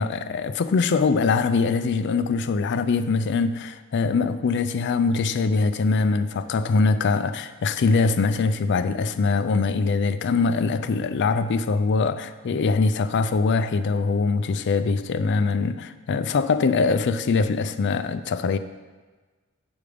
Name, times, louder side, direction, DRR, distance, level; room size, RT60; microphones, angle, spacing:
voice 1, 0.0-18.6, left 4 dB, 50° left, 0.4 m, -23 dB
8.0 x 5.1 x 5.0 m
head